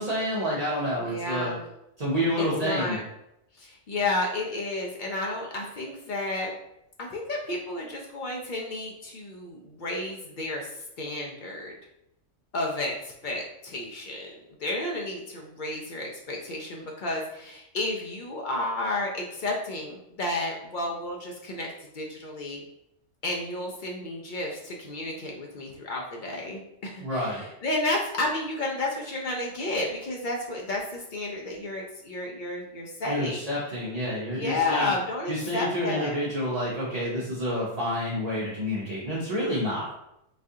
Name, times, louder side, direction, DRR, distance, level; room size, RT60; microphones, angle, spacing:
voice 1, 0.0-1.5 2.0-3.0 27.0-27.4 33.0-34.9 35.3-39.9, equal, 40° right, -6 dB, 0.6 m, -29 dB
voice 2, 1.0-1.6 2.4-3.0 3.6-6.5 7.0-10.7 11.0-11.7 12.5-14.3 14.6-21.7 21.9-22.6 23.2-33.5 34.3-36.2, left 2 dB, 60° left, -1 dB, 0.5 m, -31 dB
4.1 x 2.4 x 2.7 m, 0.82 s
omnidirectional pair, 1.4 m